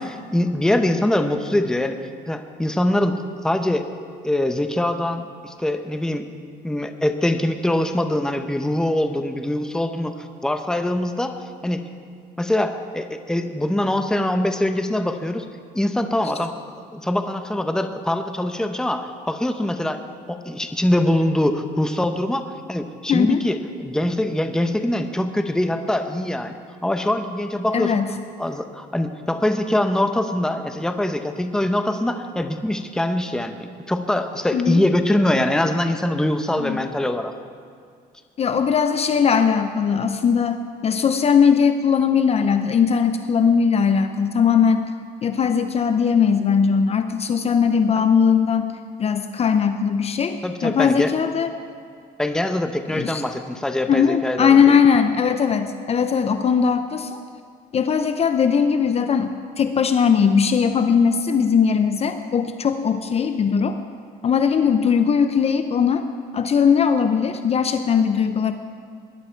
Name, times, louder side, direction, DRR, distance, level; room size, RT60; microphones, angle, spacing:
voice 1, 0.0-2.0 2.3-3.2 3.4-3.8 4.2-6.3 6.6-10.1 10.4-11.8 12.4-15.5 15.7-16.5 16.9-20.0 20.3-28.0 28.4-37.3 50.4-51.1 52.2-54.8, left 1 dB, 5° left, 7 dB, 0.8 m, -23 dB
voice 2, 23.1-23.4 27.7-28.1 34.5-34.8 36.6-36.9 38.4-44.8 45.2-48.7 49.0-51.5 52.9-53.2 53.9-57.2 57.7-63.8 64.2-66.1 66.3-68.5, left 6 dB, 35° left, 8 dB, 0.7 m, -19 dB
20.0 x 11.0 x 4.6 m, 2.2 s
cardioid pair, 110°, 17 cm